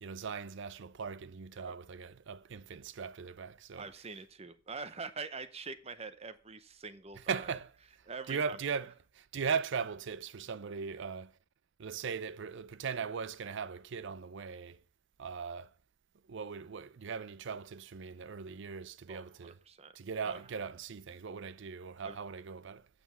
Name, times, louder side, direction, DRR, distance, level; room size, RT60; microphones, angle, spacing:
voice 1, 0.0-3.9 7.3-11.3 11.8-14.8 15.2-15.7 16.3-19.6 19.9-22.9, right 6 dB, 60° right, 0.5 m, -39 dB
voice 2, 3.8-7.5 8.1-8.6 19.1-20.0 20.2-20.4 22.0-22.2, right 4 dB, 30° right, 0.7 m, -44 dB
8.4 x 7.1 x 5.5 m
head